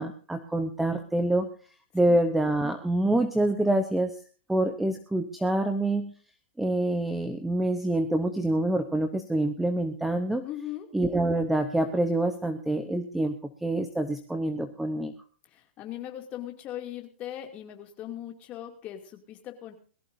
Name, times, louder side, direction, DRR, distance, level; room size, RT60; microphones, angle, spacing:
voice 1, 0.0-1.5 1.9-4.1 4.5-6.1 6.6-10.4 10.9-13.3 13.6-15.1, right 1 dB, 5° right, 7 dB, 0.8 m, -26 dB
voice 2, 10.4-10.9 15.5-19.7, left 12 dB, 20° left, 4 dB, 2.5 m, -39 dB
21.5 x 14.5 x 2.6 m, 0.40 s
hypercardioid pair, 165°, 6 cm